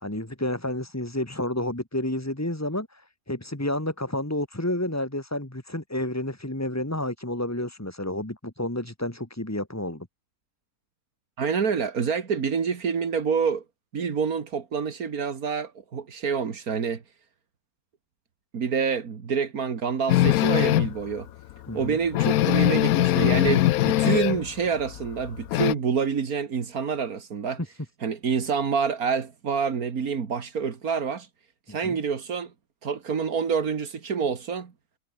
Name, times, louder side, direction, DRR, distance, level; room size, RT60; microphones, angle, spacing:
voice 1, 0.0-10.1 21.7-22.0 27.6-27.7 31.8-32.0, left 1 dB, 10° left, 2.4 m, -30 dB
voice 2, 11.4-13.6 13.9-17.0 18.5-21.3 21.7-27.6 28.0-31.3 31.7-32.5 32.8-34.7, right 6 dB, 85° right, 2.3 m, -27 dB
sound 1, 20.1-21.0 21.5-21.6 21.8-21.9 22.1-24.5 24.8-25.7, left 14 dB, 90° left, 1.1 m, -21 dB
omnidirectional pair, 1.5 m